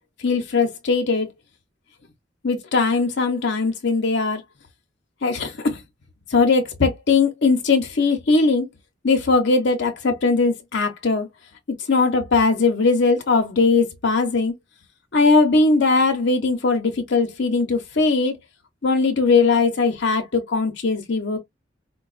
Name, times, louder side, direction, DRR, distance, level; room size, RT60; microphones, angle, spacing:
voice 1, 0.2-1.3 2.4-4.4 5.2-5.8 6.3-8.7 9.0-11.3 11.9-14.5 15.1-18.4 18.8-21.4, left 4 dB, 65° left, 0.7 m, -19 dB
4.5 x 2.2 x 2.4 m
head